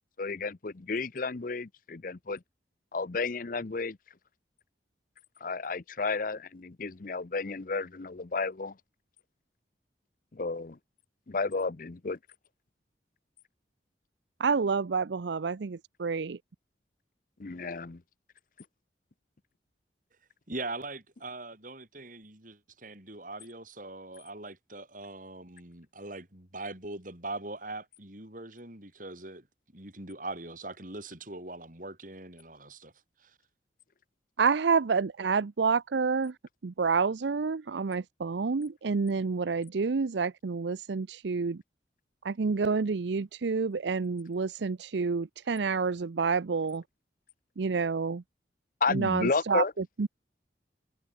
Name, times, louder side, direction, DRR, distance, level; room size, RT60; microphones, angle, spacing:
voice 1, 0.2-2.4 2.9-4.0 5.4-8.7 10.3-10.8 11.3-12.2 17.4-18.0 48.8-49.7, left 4 dB, 45° left, 0.7 m, -32 dB
voice 2, 14.4-16.4 34.4-36.3 36.6-41.6 42.2-46.8 47.6-48.2 48.9-50.1, right 5 dB, 75° right, 0.5 m, -28 dB
voice 3, 20.5-29.5 29.7-32.9 33.2-33.4, right 2 dB, 45° right, 5.2 m, -41 dB
head